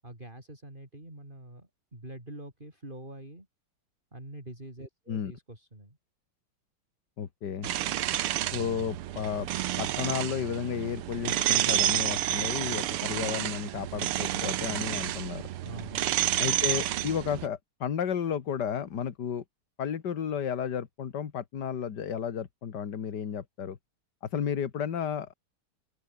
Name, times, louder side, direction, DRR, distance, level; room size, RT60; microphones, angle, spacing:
voice 1, 0.0-3.5 4.1-6.0 15.6-16.2, right 1 dB, 20° right, 6.2 m, -45 dB
voice 2, 7.2-7.7 8.5-9.5 9.8-15.4 16.4-19.4 19.8-23.8 24.2-25.3, left 8 dB, 55° left, 2.0 m, -33 dB
sound 1, 7.6-17.5, right 13 dB, 90° right, 1.8 m, -30 dB
open air
omnidirectional pair, 2.4 m